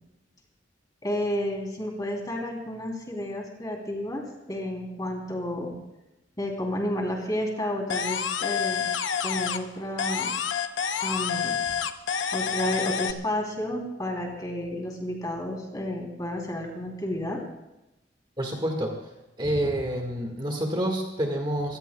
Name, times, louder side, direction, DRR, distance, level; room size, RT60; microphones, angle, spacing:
voice 1, 1.0-5.8 6.4-8.9 9.2-10.3 11.0-11.6 12.3-17.4 19.5-19.6, left 1 dB, 20° left, 1 dB, 3.1 m, -31 dB
sound 1, 7.9-9.7 10.0-13.1, left 7 dB, 90° left, 0.8 m, -28 dB
voice 2, 18.4-19.0 19.4-21.8, right 1 dB, 25° right, 2 dB, 1.7 m, -28 dB
25.0 x 18.5 x 2.3 m, 0.95 s
head